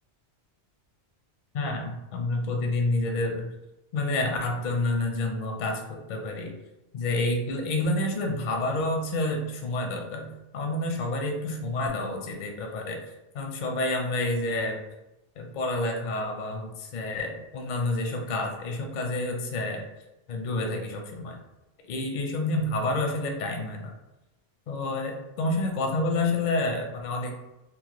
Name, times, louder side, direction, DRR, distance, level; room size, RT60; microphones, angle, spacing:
voice 1, 1.5-3.5 3.9-6.5 6.9-10.3 10.5-13.0 13.3-14.8 15.4-19.8 20.3-21.4 21.9-23.9 24.7-27.3, left 2 dB, 55° left, 2 dB, 0.5 m, -29 dB
3.0 x 2.1 x 2.9 m, 0.97 s
omnidirectional pair, 1.1 m